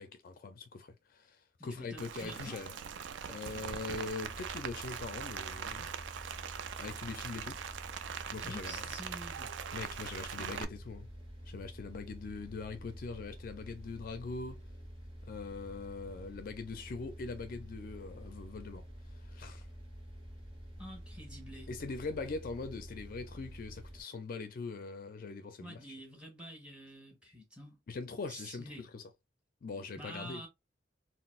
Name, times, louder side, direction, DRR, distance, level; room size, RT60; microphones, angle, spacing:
voice 1, 0.0-2.7 3.3-5.9 6.8-7.6 8.3-8.9 9.7-11.1 11.5-14.6 15.2-18.8 19.3-19.7 21.7-25.9 27.9-29.0 29.6-30.4, left 4 dB, 50° left, 0.4 m, -42 dB
voice 2, 1.6-2.6 8.3-9.6 20.8-21.7 25.6-27.8 28.3-28.9 30.0-30.5, equal, 5° right, 1.3 m, -48 dB
Rain, 2.0-10.6, right 7 dB, 80° right, 0.4 m, -42 dB
sound 1, 4.2-24.0, equal, 30° right, 1.7 m, -49 dB
3.9 x 2.0 x 2.4 m
head